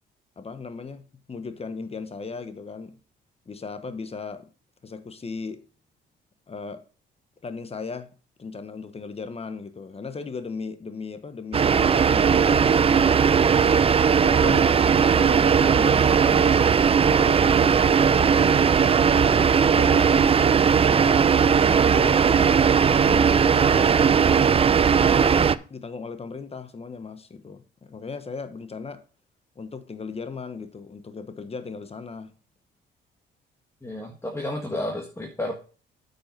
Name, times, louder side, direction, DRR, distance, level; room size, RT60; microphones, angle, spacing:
voice 1, 0.4-3.0 3.5-4.5 4.8-5.6 6.5-6.8 7.4-8.1 8.4-13.6 14.2-14.7 14.9-16.5 17.0-18.6 19.2-21.3 21.6-22.2 22.9-24.6 25.1-29.0 29.5-32.3, left 4 dB, 30° left, 1.2 m, -37 dB
sound 1, 11.5-25.5, right 6 dB, 30° right, 0.4 m, -18 dB
voice 2, 33.8-35.6, left 1 dB, 15° left, 1.6 m, -31 dB
8.7 x 5.5 x 5.3 m
cardioid pair, 90°, 20 cm